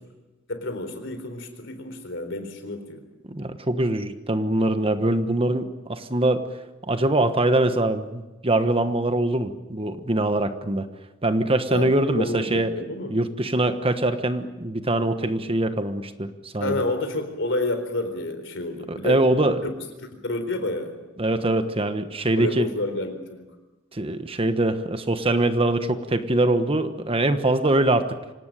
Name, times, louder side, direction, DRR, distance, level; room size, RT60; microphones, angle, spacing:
voice 1, 0.5-3.0 11.7-13.1 16.6-19.2 19.6-19.7 20.1-21.0 22.3-23.5, left 2 dB, 70° left, 8 dB, 4.1 m, -29 dB
voice 2, 3.3-6.4 6.9-10.9 11.2-12.7 13.1-16.8 18.9-19.6 21.2-22.7 23.9-28.2, right 1 dB, 30° right, 9 dB, 1.3 m, -23 dB
25.5 x 18.0 x 9.2 m, 1.1 s
head